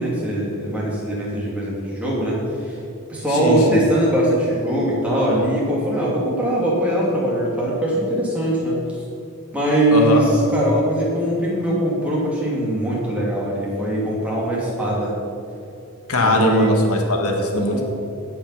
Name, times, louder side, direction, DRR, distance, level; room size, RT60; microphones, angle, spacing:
voice 1, 0.0-2.8 3.1-8.8 9.5-15.1 16.2-16.7 17.7-17.8, right 1 dB, 5° right, -6 dB, 2.7 m, -21 dB
voice 2, 3.3-3.8 9.9-10.2 16.1-17.8, left 1 dB, 85° left, 2 dB, 1.8 m, -20 dB
16.5 x 5.7 x 5.9 m, 2.7 s
head